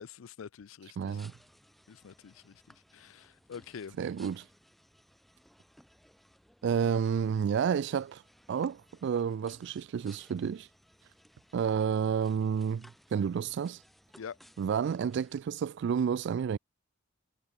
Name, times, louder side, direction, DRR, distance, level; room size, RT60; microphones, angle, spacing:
voice 1, 0.0-1.2 1.9-2.6 2.9-4.0 14.2-14.4, left 6 dB, 75° left, 0.4 m, -46 dB
voice 2, 1.0-1.3 4.0-4.5 6.6-8.2 8.5-10.7 11.5-13.8 14.6-16.6, right 7 dB, 60° right, 0.3 m, -30 dB
sound 1, 1.1-15.4, equal, ahead, 3.2 m, -61 dB
head